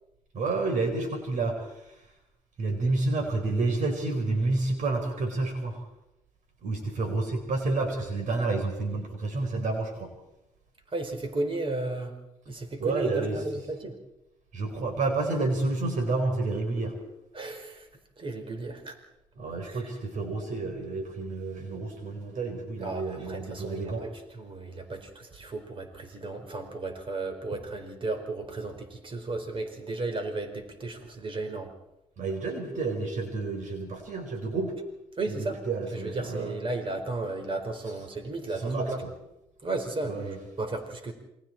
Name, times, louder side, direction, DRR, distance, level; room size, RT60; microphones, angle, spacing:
voice 1, 0.3-1.7 2.6-5.8 6.6-10.1 12.8-13.4 14.5-16.9 19.4-24.0 32.2-34.7 35.7-36.6 38.5-39.1 40.1-40.4, right 3 dB, 60° right, 5 dB, 4.4 m, -29 dB
voice 2, 10.9-12.1 12.5-14.0 17.3-17.9 18.2-19.0 19.6-19.9 22.8-31.7 35.2-35.6 35.9-39.0 39.6-41.1, right 2 dB, 35° right, 6 dB, 4.8 m, -34 dB
28.5 x 24.0 x 4.5 m, 0.85 s
supercardioid pair, 60°, 14 cm